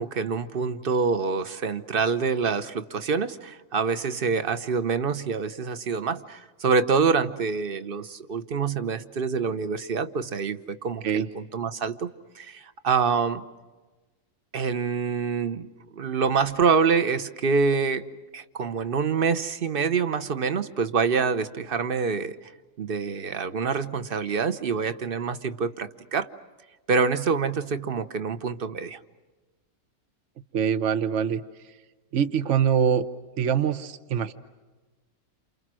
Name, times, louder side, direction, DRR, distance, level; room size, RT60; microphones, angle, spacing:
voice 1, 0.0-12.1 12.3-13.4 14.5-15.7 16.0-18.1 18.3-22.5 22.8-26.3 26.9-29.0, right 5 dB, 40° right, 12 dB, 1.1 m, -26 dB
voice 2, 30.5-31.4 32.1-33.0 33.4-34.3, right 8 dB, 60° right, 11 dB, 1.3 m, -24 dB
29.5 x 28.0 x 6.2 m, 1.3 s
omnidirectional pair, 1.5 m